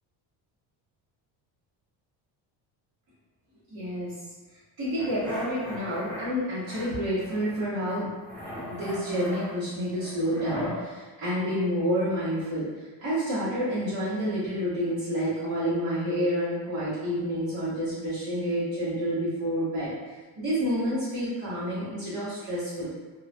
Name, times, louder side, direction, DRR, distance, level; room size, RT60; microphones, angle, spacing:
voice 1, 3.7-4.1 4.8-8.1 8.7-19.9 20.4-22.9, equal, 35° right, -14 dB, 0.8 m, -29 dB
sound 1, 4.9-6.3 6.6-7.6 7.8-10.8, left 1 dB, 5° left, 0.3 m, -39 dB
2.3 x 2.1 x 2.5 m, 1.3 s
cardioid pair, 175°, 44 cm